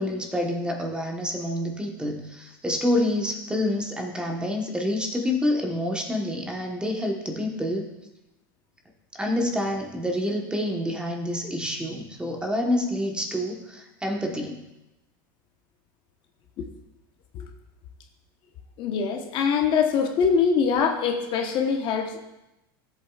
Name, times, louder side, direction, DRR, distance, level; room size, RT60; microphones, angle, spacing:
voice 1, 0.0-7.9 9.2-14.6, left 1 dB, 10° right, 1 dB, 1.2 m, -27 dB
voice 2, 18.8-22.2, left 6 dB, 45° left, 4 dB, 1.1 m, -23 dB
14.0 x 8.1 x 2.4 m, 0.94 s
supercardioid pair, 120°, 12 cm